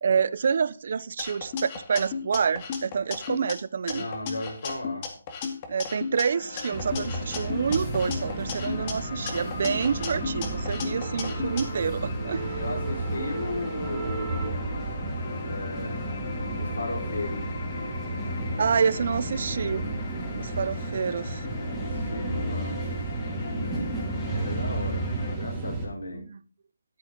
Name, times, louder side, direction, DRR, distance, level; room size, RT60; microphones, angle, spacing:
voice 1, 0.0-4.1 5.7-12.6 18.6-19.8 20.4-21.4 26.1-26.4, right 6 dB, 50° right, 18 dB, 0.7 m, -27 dB
sound 1, 1.2-3.5 3.9-6.2 6.6-8.9 9.3-11.6, left 6 dB, 25° left, 2.2 m, -35 dB
voice 2, 3.9-5.1 10.8-11.0 12.6-14.4 15.4-16.0 16.6-17.4 21.3-22.8 23.5-24.0 24.3-25.1 25.3-26.3, left 2 dB, 85° left, 1 dB, 5.2 m, -36 dB
sound 2, 6.3-25.4, left 4 dB, 50° left, 2.3 m, -40 dB
sound 3, 6.7-25.9, right 2 dB, 5° right, 3.1 m, -32 dB
14.0 x 8.0 x 3.9 m, 0.38 s
hypercardioid pair, 165°, 0 cm